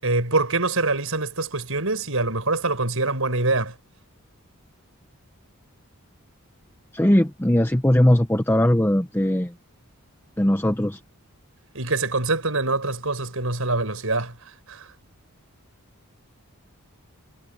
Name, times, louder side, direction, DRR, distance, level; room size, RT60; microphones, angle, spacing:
voice 1, 0.0-3.7 11.7-14.9, right 3 dB, 65° right, 7.0 m, -24 dB
voice 2, 6.9-9.5 10.4-11.0, left 1 dB, 10° left, 0.8 m, -19 dB
head